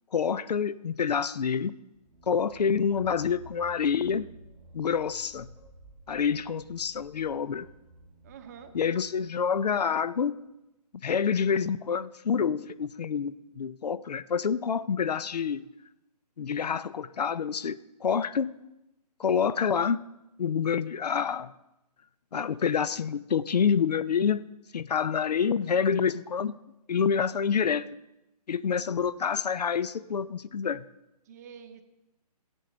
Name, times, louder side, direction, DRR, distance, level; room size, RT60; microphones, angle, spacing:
voice 1, 0.1-1.7 2.3-4.3 4.7-5.5 6.1-7.7 8.7-10.4 11.0-15.6 16.4-18.5 19.2-20.0 20.4-21.5 22.3-26.5 26.9-27.9 28.5-30.8, left 6 dB, 75° left, 17 dB, 0.5 m, -27 dB
sound 1, 1.9-10.5, right 1 dB, ahead, 1.2 m, -53 dB
voice 2, 8.2-8.7 31.2-31.8, right 7 dB, 25° right, 7 dB, 0.8 m, -47 dB
15.5 x 10.0 x 3.8 m, 0.93 s
hypercardioid pair, 155°, 21 cm